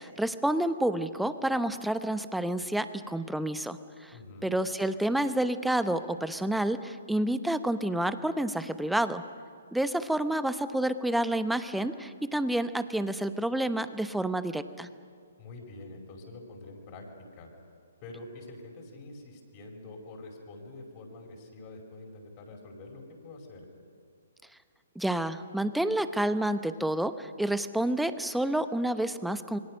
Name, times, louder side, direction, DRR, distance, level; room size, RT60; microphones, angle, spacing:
voice 1, 0.0-4.1 4.4-9.2 9.7-14.9 25.0-29.6, right 1 dB, ahead, 11 dB, 0.9 m, -29 dB
voice 2, 4.1-4.6 15.4-17.1 17.3-17.5 18.0-23.7, left 2 dB, 35° left, 1 dB, 5.6 m, -46 dB
27.0 x 23.5 x 6.6 m, 2.2 s
figure-of-eight pair, 130°, 0 cm